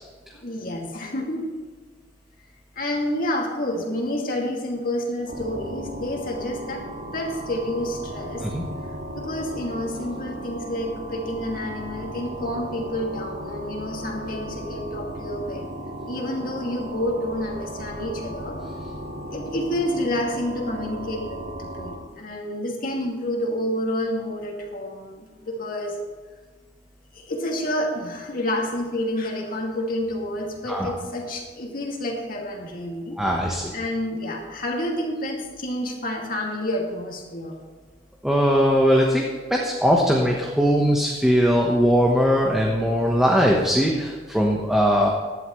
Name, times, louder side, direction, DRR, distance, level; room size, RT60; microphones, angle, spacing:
voice 1, 0.4-1.4 2.8-6.8 7.1-8.5 9.1-15.7 16.0-18.6 19.3-26.0 27.1-33.2 33.7-37.6, left 1 dB, 50° left, 0 dB, 2.3 m, -29 dB
sound 1, 5.3-22.0, right 1 dB, 85° right, 2.2 m, -36 dB
voice 2, 33.2-33.7 38.2-45.1, equal, ahead, -1 dB, 1.1 m, -20 dB
16.5 x 11.5 x 3.2 m, 1.5 s
head